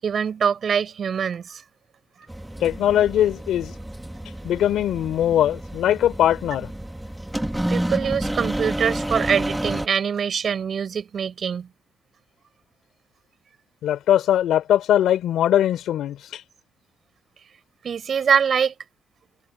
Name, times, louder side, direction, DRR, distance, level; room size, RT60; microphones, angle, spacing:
voice 1, 0.0-1.6 7.7-11.7 17.8-18.7, right 7 dB, 40° right, 6.3 m, -23 dB
sound 1, 2.3-9.9, right 1 dB, 5° right, 1.3 m, -30 dB
voice 2, 2.6-3.8 4.4-6.7 13.8-16.4, left 11 dB, 80° left, 3.1 m, -21 dB
cardioid pair, 165°, 0 cm